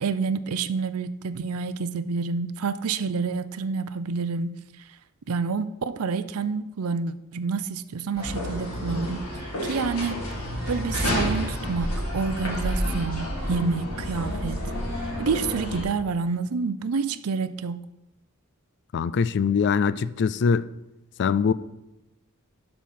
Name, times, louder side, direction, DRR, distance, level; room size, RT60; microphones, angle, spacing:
voice 1, 0.0-4.6 5.3-9.2 9.6-10.2 10.7-14.6 15.0-17.8, right 4 dB, 75° right, 0.5 m, -28 dB
sound 1, 8.2-15.8, equal, 85° left, 3.0 m, -30 dB
voice 2, 18.9-20.7 21.2-21.5, left 6 dB, 55° left, 0.4 m, -22 dB
12.0 x 5.5 x 4.3 m
head